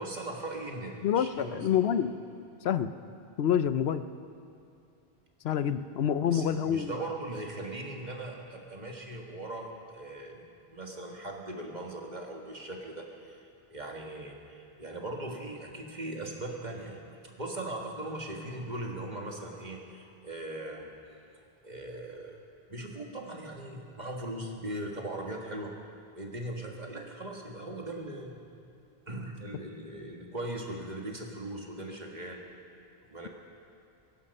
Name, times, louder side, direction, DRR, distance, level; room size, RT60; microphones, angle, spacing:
voice 1, 0.0-1.5 5.5-5.6 6.3-20.9 21.6-22.4 22.7-25.7 26.2-28.4 29.1-32.4 33.0-33.3, right 1 dB, 45° right, 0 dB, 1.9 m, -39 dB
voice 2, 1.0-2.1 2.6-2.9 3.4-4.0 5.4-6.9, left 9 dB, 85° left, 12 dB, 0.9 m, -27 dB
23.0 x 11.5 x 5.4 m, 2.5 s
omnidirectional pair, 1.0 m